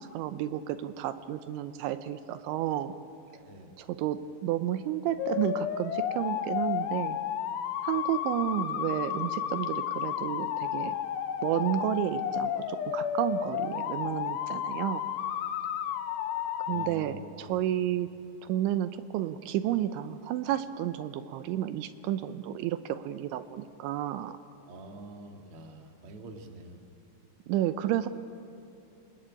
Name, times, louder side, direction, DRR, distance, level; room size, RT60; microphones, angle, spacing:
voice 1, 0.1-2.9 3.8-7.2 7.8-11.0 11.4-15.0 16.7-18.1 18.4-24.4 27.5-28.1, right 12 dB, 80° right, 11 dB, 3.1 m, -31 dB
voice 2, 3.3-3.7 16.7-17.6 24.7-26.8, right 2 dB, 45° right, 4 dB, 2.1 m, -46 dB
sound 1, 5.2-16.9, left 9 dB, 85° left, 3.5 m, -32 dB
29.0 x 20.0 x 8.8 m, 2.7 s
omnidirectional pair, 5.4 m